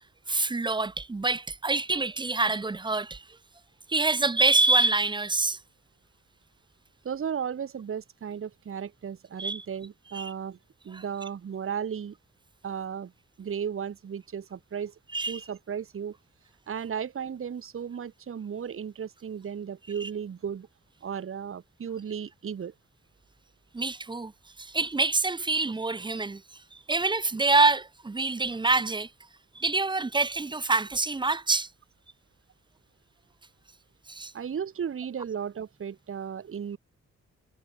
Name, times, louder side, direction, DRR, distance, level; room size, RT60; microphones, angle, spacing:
voice 1, 0.3-3.2 3.9-5.6 9.4-9.6 10.1-10.3 10.9-11.0 15.1-15.4 20.0-20.1 23.7-24.3 24.6-26.4 26.7-29.1 29.5-31.7 34.1-34.3, right 3 dB, 15° right, 0.5 m, -26 dB
voice 2, 7.0-10.6 10.8-12.1 12.6-13.1 13.4-14.9 15.3-16.2 16.7-20.7 21.0-22.7 34.3-36.8, right 7 dB, 45° right, 0.9 m, -35 dB
cardioid pair, 60°, 29 cm